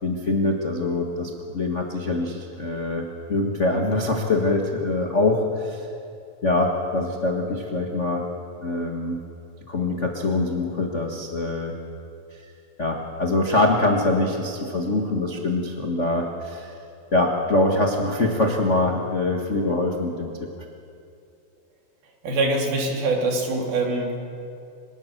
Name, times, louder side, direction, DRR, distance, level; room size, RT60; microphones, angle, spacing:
voice 1, 0.0-3.0 3.3-5.9 6.4-8.2 8.6-9.2 9.7-11.7 12.3-12.4 12.8-16.7 17.1-20.3, left 2 dB, 50° left, 0 dB, 0.8 m, -24 dB
voice 2, 22.2-24.2, right 2 dB, 80° right, 1 dB, 4.6 m, -24 dB
25.0 x 20.0 x 6.6 m, 2.5 s
omnidirectional pair, 4.2 m